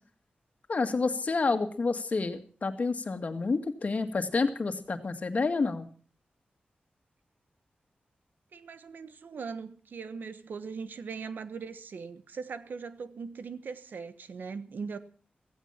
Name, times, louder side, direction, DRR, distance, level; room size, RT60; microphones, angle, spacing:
voice 1, 0.7-5.9, left 4 dB, 50° left, 2.0 m, -29 dB
voice 2, 8.5-15.0, right 5 dB, 80° right, 1.3 m, -40 dB
16.0 x 15.5 x 5.8 m
wide cardioid pair, 90°, 3 cm